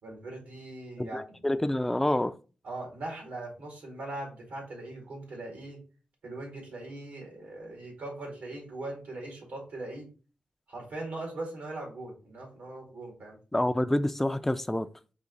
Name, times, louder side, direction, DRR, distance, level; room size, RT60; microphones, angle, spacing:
voice 1, 0.0-1.5 2.6-5.8 6.2-10.1 10.7-13.4, right 2 dB, 90° right, 0 dB, 2.2 m, -40 dB
voice 2, 1.0-2.3 13.5-14.9, left 1 dB, 10° left, 11 dB, 0.3 m, -27 dB
4.1 x 2.8 x 3.8 m, 0.35 s
cardioid pair, 80°, 3 cm